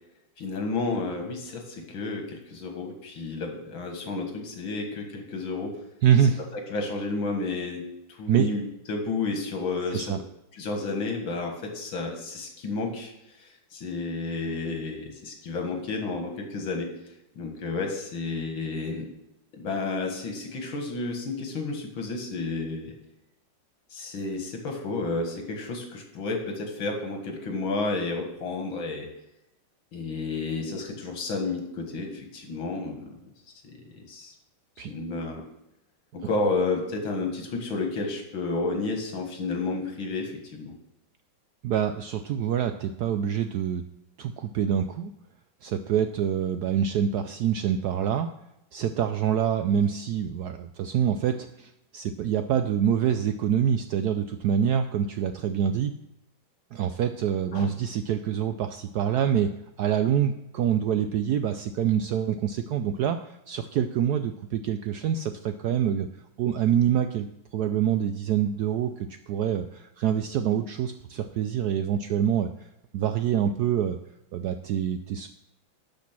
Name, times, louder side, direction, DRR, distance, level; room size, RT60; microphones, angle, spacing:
voice 1, 0.4-5.8 6.5-7.8 8.2-10.2 10.5-13.1 13.4-16.9 17.4-19.1 19.6-23.0 23.9-29.1 29.9-33.2 33.7-34.3 34.9-35.4 36.1-40.8 57.5-57.7, left 3 dB, 80° left, 2 dB, 2.5 m, -31 dB
voice 2, 6.0-6.4 8.3-8.5 9.9-10.2 34.8-34.9 41.6-43.8 44.2-45.1 45.6-48.3 48.7-55.9 56.7-59.5 59.8-66.1 66.4-67.3 67.5-72.5 72.9-74.0 74.3-75.3, right 9 dB, 75° right, 8 dB, 0.9 m, -26 dB
12.0 x 5.2 x 6.0 m, 0.87 s
omnidirectional pair, 2.2 m